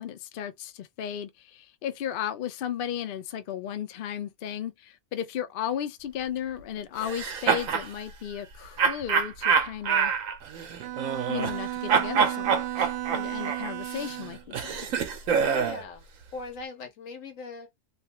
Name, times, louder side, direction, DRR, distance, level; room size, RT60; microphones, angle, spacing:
voice 1, 0.0-10.1 11.3-14.9, left 10 dB, 60° left, 0.5 m, -35 dB
sound 1, 7.0-7.9 8.8-11.6 11.9-15.8, right 6 dB, 90° right, 1.1 m, -26 dB
Bowed string instrument, 10.8-14.4, right 15 dB, 65° right, 0.7 m, -34 dB
voice 2, 15.4-16.1 16.3-17.7, left 4 dB, 75° left, 1.4 m, -40 dB
3.0 x 2.3 x 2.8 m
omnidirectional pair, 1.4 m